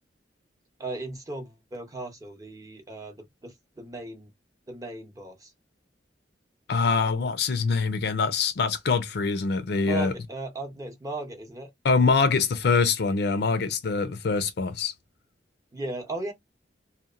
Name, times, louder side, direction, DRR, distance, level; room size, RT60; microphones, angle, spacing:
voice 1, 0.8-4.3 4.7-5.5 9.9-11.7 15.7-16.3, right 2 dB, 20° right, 0.7 m, -36 dB
voice 2, 6.7-10.1 11.8-14.9, left 4 dB, 65° left, 0.5 m, -24 dB
2.8 x 2.1 x 2.4 m
head